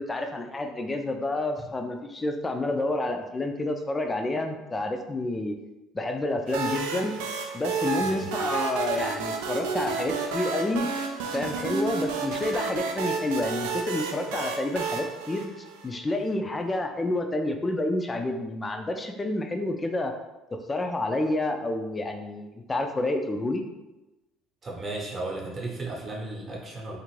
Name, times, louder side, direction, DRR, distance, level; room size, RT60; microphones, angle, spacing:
voice 1, 0.0-5.5 5.9-7.1 7.5-10.9 11.3-15.5 15.8-20.1 20.7-23.6, left 2 dB, 25° left, 5 dB, 0.4 m, -29 dB
sound 1, 6.5-16.1, right 5 dB, 75° right, 0.3 m, -31 dB
voice 2, 24.6-27.0, right 2 dB, 35° right, -1 dB, 0.8 m, -35 dB
2.5 x 2.5 x 3.1 m, 1.0 s
hypercardioid pair, 65°, 0 cm